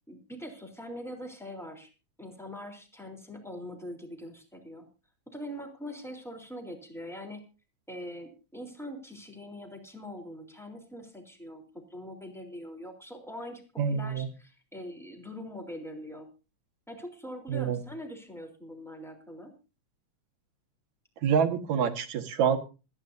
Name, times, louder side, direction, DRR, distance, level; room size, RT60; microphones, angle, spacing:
voice 1, 0.1-1.9 2.2-4.9 5.3-7.4 7.9-11.6 11.9-13.6 13.9-16.3 16.9-19.5, equal, ahead, 3 dB, 3.3 m, -42 dB
voice 2, 13.8-14.3 17.5-17.8 21.2-22.6, right 7 dB, 70° right, 5 dB, 2.8 m, -26 dB
27.5 x 10.5 x 2.7 m, 0.32 s
omnidirectional pair, 3.5 m